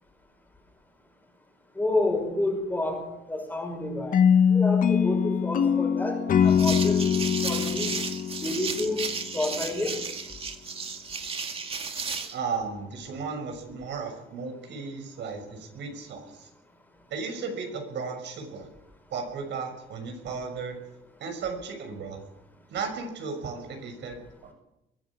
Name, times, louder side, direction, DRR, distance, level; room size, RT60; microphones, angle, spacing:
voice 1, 1.8-4.2 4.5-7.9 8.4-10.0, left 2 dB, 10° left, 2 dB, 5.5 m, -30 dB
sound 1, 4.1-9.2, left 7 dB, 45° left, 0.9 m, -23 dB
sound 2, 6.5-12.4, right 5 dB, 30° right, 2.0 m, -34 dB
voice 2, 12.3-16.5 17.1-18.7 19.1-20.8 21.2-22.2 22.7-24.2 24.4-24.5, right 5 dB, 65° right, 4 dB, 6.3 m, -35 dB
23.0 x 16.5 x 7.3 m, 0.88 s
cardioid pair, 175°, 20 cm